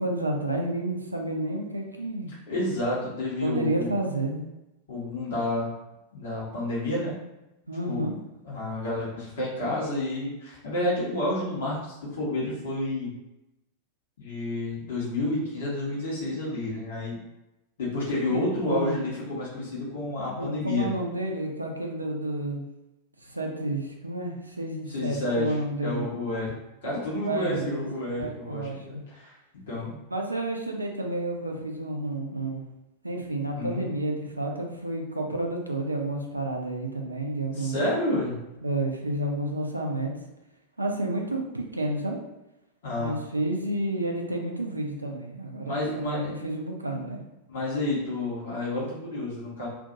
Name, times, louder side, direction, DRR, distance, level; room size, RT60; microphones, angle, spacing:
voice 1, 0.0-2.3 3.4-4.4 7.7-8.1 18.3-19.0 20.4-22.7 23.2-26.0 27.3-27.9 28.2-29.0 30.1-32.6 33.0-37.7 38.6-40.1 40.8-42.2 43.0-47.2, right 1 dB, 85° right, 2 dB, 0.3 m, -30 dB
voice 2, 2.5-3.9 4.9-5.7 6.1-7.2 7.9-8.1 8.4-13.1 14.2-17.2 17.8-21.0 24.9-25.6 25.8-26.5 26.8-29.3 29.7-30.0 33.5-33.9 37.5-38.4 42.8-43.1 45.6-46.3 47.5-49.7, left 1 dB, 60° left, -7 dB, 1.0 m, -30 dB
2.5 x 2.4 x 2.5 m, 0.94 s
figure-of-eight pair, 90°, 0 cm